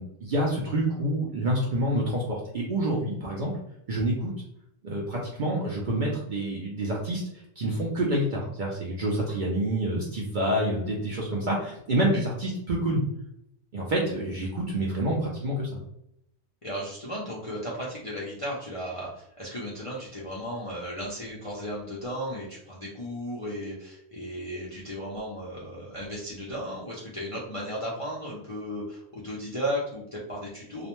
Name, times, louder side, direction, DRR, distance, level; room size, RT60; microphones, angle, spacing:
voice 1, 0.0-3.5 3.9-4.3 4.8-7.2 7.6-13.0 13.7-15.7, right 1 dB, 55° right, -3 dB, 0.5 m, -27 dB
voice 2, 16.6-30.9, equal, 40° left, -6 dB, 0.4 m, -35 dB
2.4 x 2.1 x 2.9 m, 0.76 s
omnidirectional pair, 1.3 m